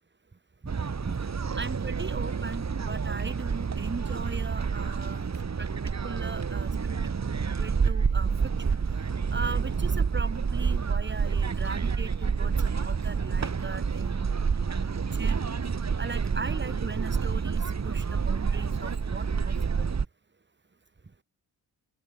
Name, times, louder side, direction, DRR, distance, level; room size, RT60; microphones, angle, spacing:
voice 1, 0.6-1.3 1.6-5.3 5.6-5.7 6.0-6.7 7.6-8.8 9.3-14.3 14.7-15.7 16.0-19.9, right 3 dB, 30° right, 6.6 m, -39 dB
sound 1, 0.7-20.0, right 5 dB, 45° right, 5.1 m, -28 dB
open air
wide cardioid pair, 115°, 38 cm